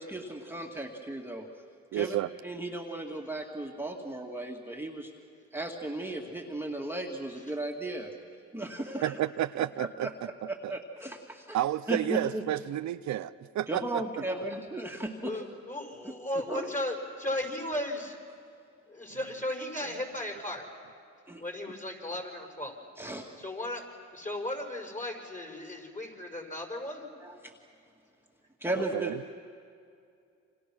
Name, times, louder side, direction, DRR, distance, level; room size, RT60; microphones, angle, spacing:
voice 1, 0.0-1.4 1.9-2.2 2.4-5.1 5.5-8.1 8.5-9.1 9.8-10.1 10.5-11.6 11.9-12.4 13.7-15.3 16.5-16.7 21.3-21.4 23.0-23.3 27.2-27.5 28.6-29.1, right 1 dB, 5° right, 0 dB, 2.2 m, -36 dB
voice 2, 1.9-2.3 9.0-10.1 10.6-10.8 11.5-14.0 28.8-29.2, right 13 dB, 65° right, 13 dB, 0.7 m, -31 dB
voice 3, 15.2-18.2 18.9-20.7 21.4-22.8 23.4-23.8 24.1-27.0, left 1 dB, 25° left, 3 dB, 5.6 m, -35 dB
29.0 x 26.5 x 6.2 m, 2.4 s
cardioid pair, 90°, 30 cm